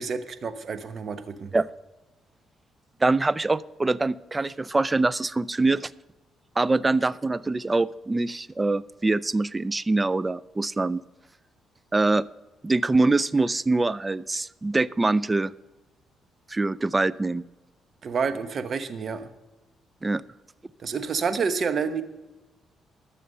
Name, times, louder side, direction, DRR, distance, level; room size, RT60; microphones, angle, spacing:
voice 1, 0.0-1.5 18.0-19.3 20.8-22.0, right 5 dB, 50° right, 11 dB, 1.0 m, -29 dB
voice 2, 3.0-5.9 6.6-11.0 11.9-12.2 12.6-15.5 16.5-17.4 20.0-20.2, right 3 dB, 20° right, 20 dB, 0.3 m, -24 dB
13.0 x 6.9 x 5.4 m, 1.1 s
cardioid pair, 90°, 0 cm